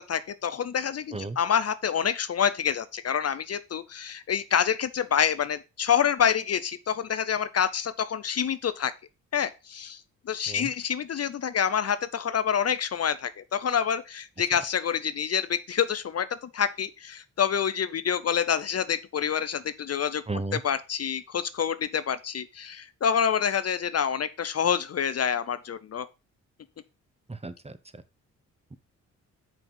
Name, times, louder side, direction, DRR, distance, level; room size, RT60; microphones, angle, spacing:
voice 1, 0.0-8.9 9.3-10.0 10.3-16.3 16.5-20.2 20.6-26.1, left 8 dB, 45° left, 0.6 m, -27 dB
voice 2, 20.3-20.6 27.3-28.0 28.7-28.8, right 2 dB, 20° right, 1.0 m, -35 dB
5.8 x 5.3 x 5.5 m
supercardioid pair, 50°, 34 cm